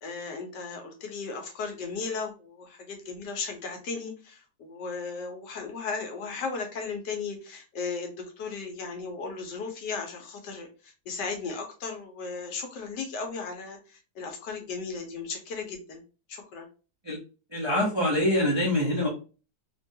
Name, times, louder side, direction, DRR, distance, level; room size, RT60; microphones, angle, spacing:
voice 1, 0.0-16.0 16.3-16.7, left 4 dB, 80° left, 3 dB, 1.4 m, -36 dB
voice 2, 17.5-19.1, left 1 dB, 25° right, -5 dB, 0.6 m, -25 dB
3.4 x 2.2 x 2.6 m, 0.34 s
omnidirectional pair, 1.8 m